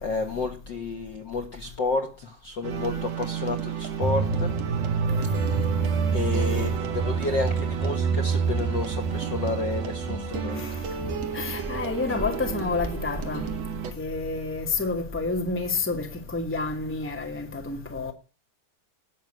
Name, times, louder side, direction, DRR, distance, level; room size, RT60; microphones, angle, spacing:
voice 1, 0.0-4.5 5.5-5.6 6.1-10.6, left 3 dB, 85° left, 1.0 m, -31 dB
sound 1, 2.6-13.9, right 8 dB, 55° right, 2.5 m, -33 dB
sound 2, 4.0-13.9 14.2-14.3, right 4 dB, 80° right, 6.8 m, -28 dB
voice 2, 11.3-13.4 14.0-18.1, left 3 dB, 5° left, 0.9 m, -29 dB
18.5 x 6.3 x 9.0 m
omnidirectional pair, 4.2 m